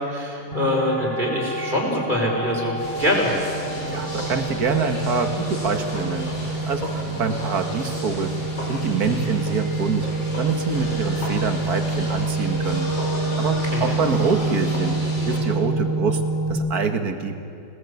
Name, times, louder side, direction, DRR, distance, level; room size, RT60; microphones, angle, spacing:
voice 1, 0.0-3.3 9.2-9.3 13.6-14.0, equal, 25° right, -1 dB, 5.2 m, -24 dB
sound 1, 0.5-16.5, right 2 dB, 20° left, 3.0 m, -27 dB
sound 2, 2.8-15.4, left 1 dB, 90° left, 5.8 m, -34 dB
voice 2, 3.9-6.3 6.7-8.3 8.7-10.1 10.4-12.9 13.4-14.9 15.3-16.2 16.5-17.3, right 5 dB, 55° right, 6 dB, 2.1 m, -25 dB
28.0 x 19.0 x 8.5 m, 2.8 s
omnidirectional pair, 2.0 m